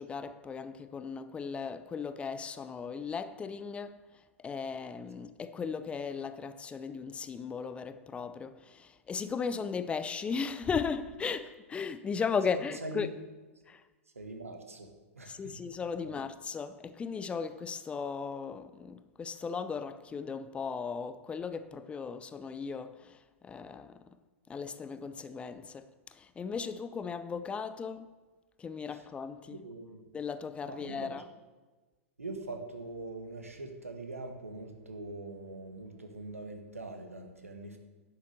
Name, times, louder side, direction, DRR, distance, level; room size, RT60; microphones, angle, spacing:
voice 1, 0.0-4.0 4.4-13.1 13.7-13.8 15.3-24.2 24.5-28.1 28.6-29.6 30.1-31.2, left 5 dB, 15° left, 0.5 m, -37 dB
voice 2, 12.5-13.1 14.1-14.9 15.1-15.6 16.0-16.1 28.9-29.1 29.5-30.1 30.6-31.1 32.2-37.8, right 2 dB, 80° right, 1.7 m, -43 dB
11.0 x 7.0 x 6.8 m
figure-of-eight pair, 100°, 7 cm